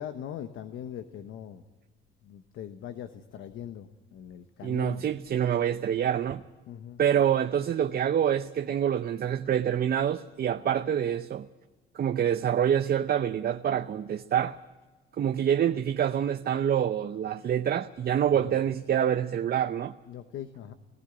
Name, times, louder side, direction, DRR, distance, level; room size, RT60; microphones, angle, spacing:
voice 1, 0.0-1.6 2.2-5.0 6.7-7.0 18.4-18.5 20.1-20.7, left 10 dB, 80° left, 1.1 m, -41 dB
voice 2, 4.6-6.4 7.0-11.5 11.9-14.6 15.2-19.9, right 9 dB, 50° right, 0.7 m, -26 dB
18.0 x 15.0 x 10.0 m
cardioid pair, 90°, 20 cm